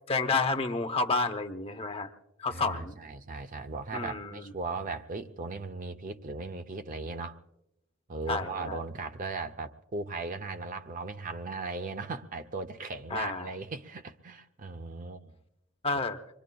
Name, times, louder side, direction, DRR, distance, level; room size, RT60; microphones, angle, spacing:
voice 1, 0.1-2.1 2.4-3.0 3.9-4.5 8.3-8.8 13.1-13.5 15.8-16.2, left 3 dB, 30° left, 0.7 m, -30 dB
voice 2, 2.5-7.4 8.1-15.3, right 3 dB, 40° right, 0.6 m, -37 dB
26.0 x 22.5 x 2.3 m
head